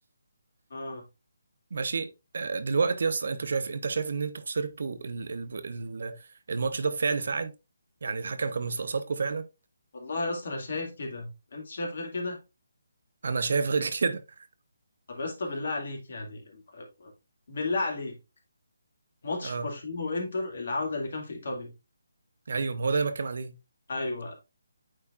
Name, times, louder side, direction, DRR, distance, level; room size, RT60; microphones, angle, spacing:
voice 1, 0.7-1.0 9.9-12.4 15.1-17.1 17.5-18.1 19.2-21.7 23.9-24.3, left 2 dB, 55° left, 2.1 m, -33 dB
voice 2, 1.7-2.1 2.3-6.1 6.5-7.5 8.0-9.4 13.2-14.2 19.4-19.7 22.5-23.6, right 4 dB, 60° right, 0.8 m, -29 dB
8.7 x 4.4 x 2.4 m
figure-of-eight pair, 150°, 0 cm